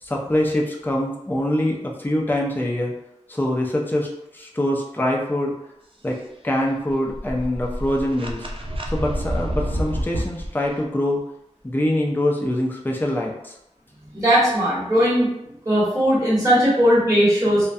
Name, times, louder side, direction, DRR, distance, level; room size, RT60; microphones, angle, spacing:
voice 1, 0.0-2.9 3.3-5.5 6.0-6.2 6.4-8.5 8.9-11.2 11.6-13.5, left 1 dB, 15° left, -1 dB, 0.4 m, -24 dB
sound 1, 6.9-10.5, equal, 45° right, 0.3 m, -28 dB
voice 2, 14.1-15.3 15.6-17.6, equal, 25° right, -10 dB, 1.2 m, -18 dB
2.2 x 2.1 x 2.6 m, 0.80 s
wide cardioid pair, 45°, 12 cm